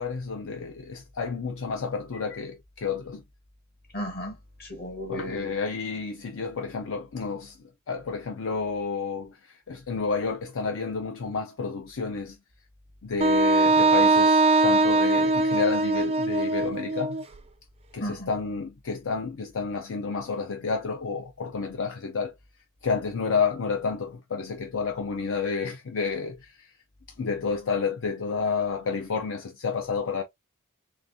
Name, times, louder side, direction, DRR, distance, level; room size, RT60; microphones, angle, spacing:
voice 1, 0.0-3.2 5.1-7.6 7.9-12.4 13.0-17.2 17.9-22.3 22.8-26.7 27.2-30.2, left 5 dB, 65° left, 0.6 m, -30 dB
voice 2, 3.9-5.6 18.0-18.3, equal, 45° left, 1.8 m, -35 dB
Wind instrument woodwind instrument, 13.2-17.2, right 3 dB, 25° right, 0.4 m, -21 dB
3.8 x 3.5 x 2.6 m
head